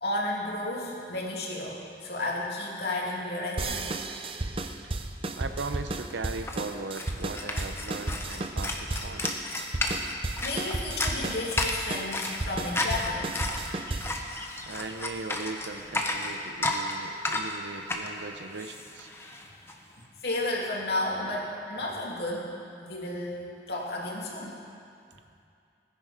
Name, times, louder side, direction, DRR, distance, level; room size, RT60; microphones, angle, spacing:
voice 1, 0.0-4.0 9.8-9.9 10.4-13.5 20.2-22.5 22.8-23.4 23.7-24.6, left 2 dB, 65° left, -3 dB, 2.6 m, -32 dB
sound 1, 3.6-14.2, right 2 dB, 30° right, 0.6 m, -34 dB
voice 2, 5.4-9.3 14.6-19.1, right 3 dB, 90° right, 8 dB, 0.7 m, -38 dB
sound 2, 5.9-19.7, left 2 dB, 15° left, 0.9 m, -33 dB
20.5 x 9.9 x 5.0 m, 2.5 s
head